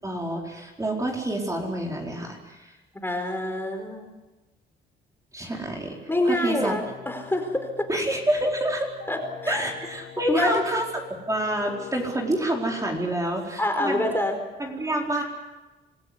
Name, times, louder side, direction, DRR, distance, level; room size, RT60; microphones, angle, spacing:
voice 1, 0.0-2.7 5.3-6.0 6.2-6.7 7.9-8.9 9.5-14.1 14.6-15.2, right 1 dB, 15° right, 0 dB, 4.5 m, -28 dB
voice 2, 2.9-4.1 6.1-7.9 9.1-9.6 10.3-10.6 13.6-14.4, left 1 dB, 10° left, 5 dB, 4.6 m, -26 dB
sound 1, 6.8-13.0, left 10 dB, 55° left, 6.3 m, -44 dB
26.5 x 15.5 x 9.7 m, 1.1 s
cardioid pair, 90°, 20 cm